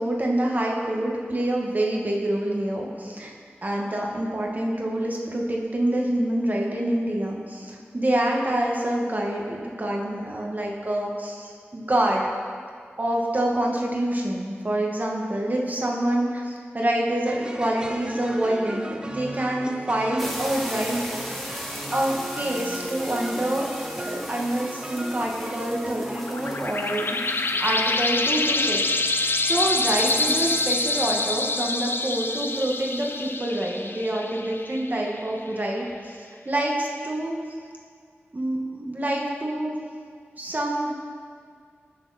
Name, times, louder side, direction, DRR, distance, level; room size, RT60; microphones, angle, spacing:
voice 1, 0.0-3.3 3.6-12.2 13.0-21.5 21.9-23.7 24.0-29.0 29.4-37.4 38.3-39.8 40.4-40.9, right 1 dB, 40° right, -2 dB, 1.9 m, -26 dB
sound 1, 17.2-27.4, right 1 dB, 20° right, 0.8 m, -37 dB
sound 2, 20.2-32.9, equal, 5° left, 2.3 m, -39 dB
sound 3, 26.0-35.2, left 2 dB, 55° left, 0.7 m, -26 dB
19.5 x 6.9 x 4.3 m, 2.1 s
wide cardioid pair, 55°, 4 cm